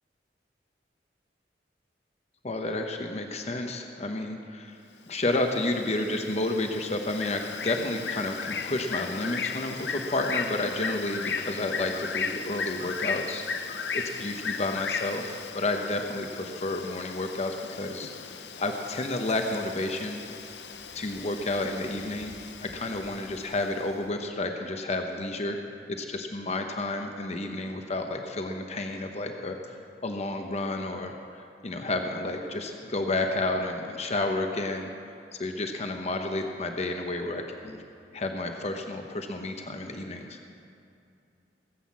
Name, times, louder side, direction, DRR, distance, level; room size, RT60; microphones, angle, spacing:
voice 1, 2.4-4.8 5.1-13.4 13.9-18.1 18.6-20.2 20.9-22.3 22.6-25.6 25.9-29.8 30.0-34.9 35.3-37.8 38.1-40.4, left 2 dB, 40° left, 4 dB, 0.9 m, -31 dB
Bird, 5.1-23.9, left 5 dB, 75° left, 0.8 m, -36 dB
17.0 x 7.9 x 7.4 m, 2.6 s
head